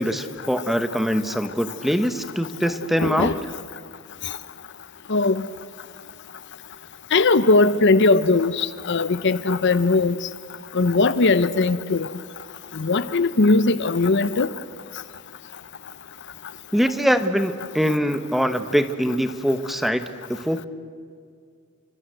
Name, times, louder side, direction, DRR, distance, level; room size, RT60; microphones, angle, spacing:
voice 1, 0.0-3.3 16.7-20.7, equal, ahead, 1.1 m, -23 dB
voice 2, 3.0-3.3 5.1-5.4 7.1-10.1 10.7-12.1 12.8-14.5, left 3 dB, 55° left, 0.8 m, -19 dB
29.5 x 24.5 x 8.0 m
head